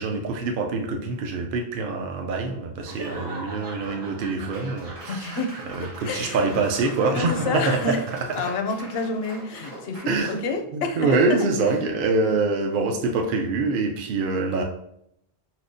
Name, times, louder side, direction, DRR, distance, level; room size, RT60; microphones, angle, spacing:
voice 1, 0.0-5.4 5.8-7.9 10.1-10.3 10.7-14.6, right 3 dB, 65° right, 2 dB, 0.7 m, -25 dB
Laughter / Applause / Crowd, 2.8-10.6, right 1 dB, 90° right, 1.4 m, -40 dB
voice 2, 5.1-5.5 6.0-6.4 7.1-8.0 8.4-11.8, left 3 dB, 75° left, 5 dB, 0.8 m, -29 dB
5.9 x 2.0 x 2.5 m, 0.73 s
omnidirectional pair, 1.1 m